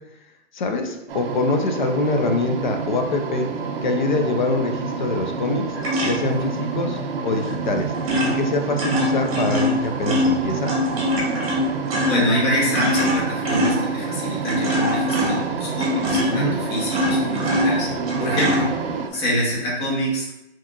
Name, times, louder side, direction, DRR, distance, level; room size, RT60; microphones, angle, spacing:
voice 1, 0.5-3.5 3.8-5.7 6.0-7.9 8.3-10.7 16.3-16.6 18.3-18.4, left 3 dB, 45° left, 5 dB, 0.4 m, -24 dB
sound 1, 1.1-19.1, right 5 dB, 55° right, 0.5 m, -28 dB
sound 2, 5.8-6.5 7.5-7.7 7.9-19.3, left 1 dB, 30° right, 1.0 m, -24 dB
voice 2, 12.1-17.9 18.2-18.7 19.1-20.3, equal, 20° left, -4 dB, 0.8 m, -25 dB
4.6 x 2.9 x 2.3 m, 0.89 s
hypercardioid pair, 165°, 34 cm